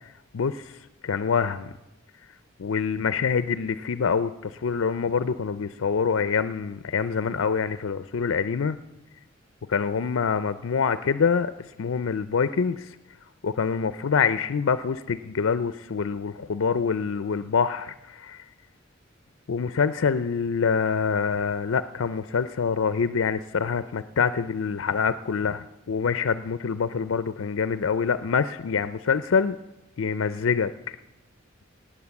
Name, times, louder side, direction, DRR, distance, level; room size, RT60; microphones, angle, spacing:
voice 1, 0.3-0.6 1.0-1.7 2.6-8.8 9.7-11.5 11.8-12.9 13.4-18.4 19.5-29.6 30.0-30.7, left 6 dB, 80° left, 13 dB, 0.5 m, -25 dB
18.0 x 8.6 x 7.1 m, 1.0 s
head